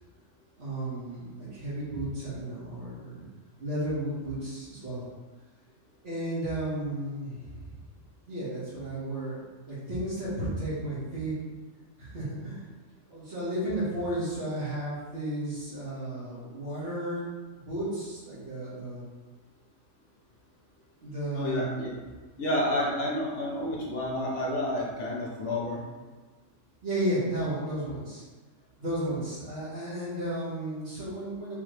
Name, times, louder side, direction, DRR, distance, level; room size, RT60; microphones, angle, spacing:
voice 1, 0.6-3.3 3.6-5.0 6.0-7.7 8.3-9.4 9.7-11.4 12.0-12.6 13.1-17.3 17.7-19.0 21.0-21.8 26.8-28.2 28.8-31.6, right 1 dB, 55° right, -13 dB, 1.7 m, -33 dB
voice 2, 21.3-21.9 22.4-25.8, left 1 dB, 65° left, -4 dB, 1.2 m, -30 dB
5.6 x 3.1 x 3.1 m, 1.3 s
omnidirectional pair, 1.3 m